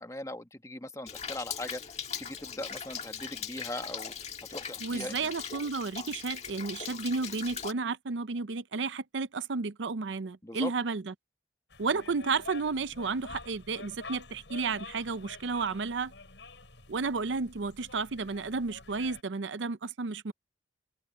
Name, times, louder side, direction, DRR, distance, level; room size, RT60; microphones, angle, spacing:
voice 1, 0.0-4.1 4.5-5.3 10.4-10.7, left 1 dB, 15° left, 1.4 m, -40 dB
Rain, 1.1-7.7, left 7 dB, 35° left, 1.9 m, -40 dB
voice 2, 4.8-11.1 11.8-16.1 16.9-20.3, right 4 dB, 90° right, 0.6 m, -32 dB
sound 1, 11.7-19.2, left 3 dB, 80° left, 6.2 m, -48 dB
open air
head